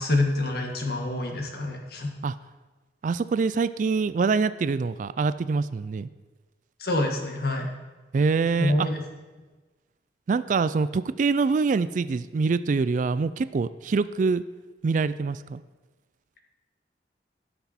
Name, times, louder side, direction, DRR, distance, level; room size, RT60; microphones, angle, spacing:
voice 1, 0.0-2.1 6.8-7.7 8.6-9.0, left 2 dB, 60° left, 3 dB, 1.7 m, -26 dB
voice 2, 3.0-6.1 8.1-8.9 10.3-14.4 14.8-15.6, right 4 dB, 45° right, 15 dB, 0.3 m, -25 dB
16.5 x 6.0 x 4.3 m, 1.2 s
head